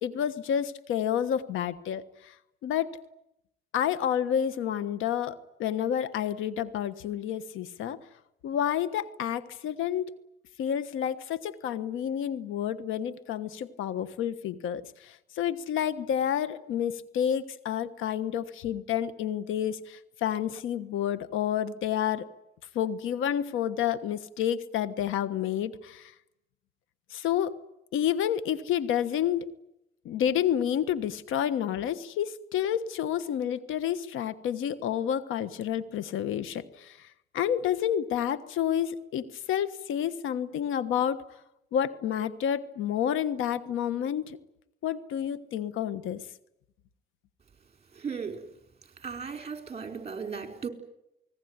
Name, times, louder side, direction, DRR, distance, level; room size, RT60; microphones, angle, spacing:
voice 1, 0.0-2.3 2.6-3.0 3.7-8.0 8.4-10.1 10.6-22.3 22.7-26.1 27.1-27.6 27.9-29.5 30.0-37.1 37.3-41.2 41.7-44.4 44.8-46.2, left 9 dB, 85° left, 15 dB, 1.4 m, -29 dB
voice 2, 47.9-48.4 49.0-50.7, right 6 dB, 30° right, 6 dB, 4.6 m, -36 dB
29.0 x 20.0 x 9.7 m, 0.85 s
cardioid pair, 90°, 20 cm